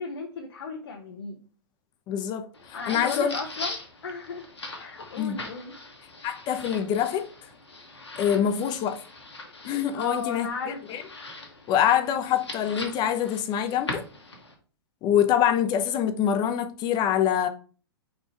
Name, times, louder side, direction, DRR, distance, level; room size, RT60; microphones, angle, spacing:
voice 1, 0.0-1.4 2.7-4.5 4.8-5.7 8.3-8.6 9.9-11.0, left 4 dB, 70° left, 1.2 m, -35 dB
voice 2, 2.1-3.4 5.2-5.4 6.2-7.3 8.2-9.0 9.6-11.0 11.7-14.0 15.0-17.5, left 9 dB, 30° left, 0.8 m, -25 dB
sound 1, 2.5-14.5, left 2 dB, 85° left, 1.7 m, -41 dB
4.9 x 4.4 x 4.7 m
hypercardioid pair, 110°, 14 cm